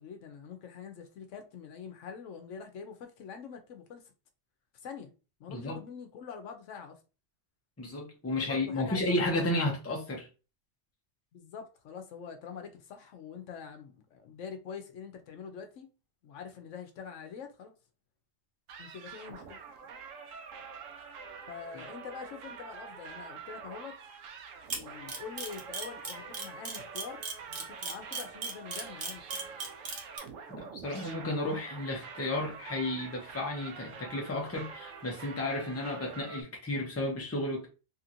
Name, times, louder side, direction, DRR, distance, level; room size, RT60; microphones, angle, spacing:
voice 1, 0.0-4.1 4.8-5.1 5.4-7.0 8.3-9.5 11.3-15.9 16.2-17.7 18.8-19.6 21.5-24.0 24.7-29.5, left 6 dB, 80° left, 1.0 m, -45 dB
voice 2, 7.8-10.3 30.5-37.7, left 1 dB, 15° left, 0.6 m, -33 dB
sound 1, 18.7-36.4, right 6 dB, 90° right, 1.0 m, -46 dB
Camera, 24.7-30.2, right 4 dB, 50° right, 0.9 m, -36 dB
2.9 x 2.8 x 2.5 m
omnidirectional pair, 1.3 m